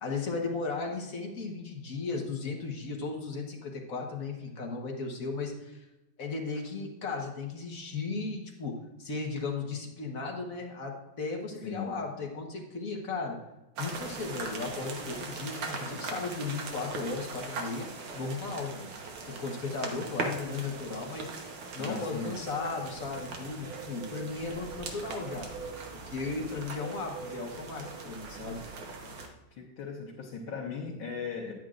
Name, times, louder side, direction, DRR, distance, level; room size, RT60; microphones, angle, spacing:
voice 1, 0.0-5.8 6.2-13.4 13.8-17.9 18.1-18.9 19.3-21.5 21.7-25.5 25.9-28.6, left 4 dB, 45° left, 1 dB, 1.5 m, -36 dB
voice 2, 11.6-12.0 21.8-22.3 29.0-29.2 29.6-31.5, left 5 dB, 75° left, -3 dB, 1.9 m, -38 dB
sound 1, 13.8-29.3, right 4 dB, 90° right, 2.0 m, -40 dB
10.0 x 9.3 x 2.5 m, 0.99 s
omnidirectional pair, 2.2 m